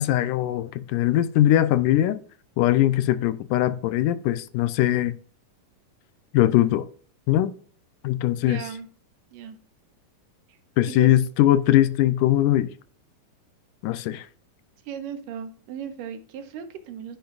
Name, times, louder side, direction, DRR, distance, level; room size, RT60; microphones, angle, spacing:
voice 1, 0.0-2.2 2.6-5.2 6.3-6.9 7.3-7.5 8.0-8.6 10.8-12.7 13.8-14.3, left 13 dB, 80° left, 2.1 m, -21 dB
voice 2, 8.4-8.9 9.3-9.6 10.9-11.1 14.9-17.2, right 8 dB, 85° right, 2.7 m, -36 dB
10.5 x 10.5 x 2.4 m
omnidirectional pair, 3.8 m